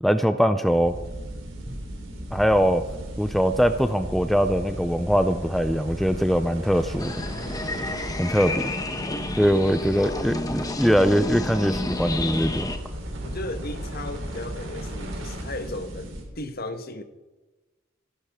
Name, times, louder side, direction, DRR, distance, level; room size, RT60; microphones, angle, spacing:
voice 1, 0.0-0.9 1.7-1.8 2.3-2.8 3.2-7.1 8.2-8.7 9.4-12.7, equal, ahead, 0.4 m, -22 dB
sound 1, 0.6-16.2, right 1 dB, 75° right, 3.5 m, -36 dB
sound 2, 7.0-12.8, left 2 dB, 20° left, 1.0 m, -30 dB
voice 2, 13.2-17.0, left 2 dB, 50° left, 1.2 m, -35 dB
26.5 x 11.0 x 3.6 m
head